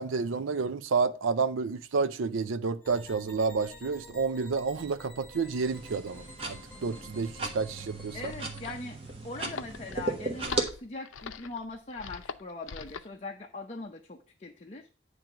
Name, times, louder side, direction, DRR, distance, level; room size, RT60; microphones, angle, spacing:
voice 1, 0.0-8.3, right 4 dB, 90° right, 0.5 m, -30 dB
sound 1, 2.8-8.8, left 1 dB, 5° left, 3.2 m, -50 dB
sound 2, 5.6-10.6, right 2 dB, 30° right, 1.2 m, -36 dB
sound 3, 8.0-13.1, left 6 dB, 90° left, 0.5 m, -43 dB
voice 2, 8.1-9.0 9.2-14.9, left 2 dB, 35° left, 0.6 m, -41 dB
8.9 x 3.3 x 6.0 m
head